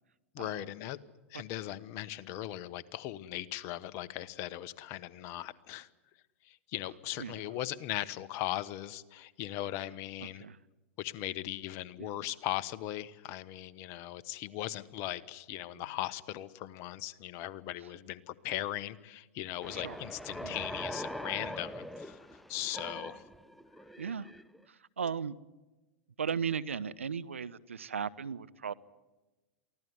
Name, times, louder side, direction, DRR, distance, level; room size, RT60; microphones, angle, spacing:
voice 1, 0.3-1.0 1.3-5.9 6.4-10.4 11.0-23.2, left 13 dB, 45° left, 15 dB, 1.2 m, -39 dB
voice 2, 10.2-10.6 12.0-12.1 15.7-15.9 19.7-20.0 20.4-20.6 24.0-24.3 24.7-25.3 26.2-28.7, right 6 dB, 90° right, 16 dB, 0.8 m, -36 dB
sound 1, 19.6-24.6, equal, ahead, 0.8 m, -42 dB
23.5 x 16.0 x 9.8 m, 1.1 s
hypercardioid pair, 105°, 7 cm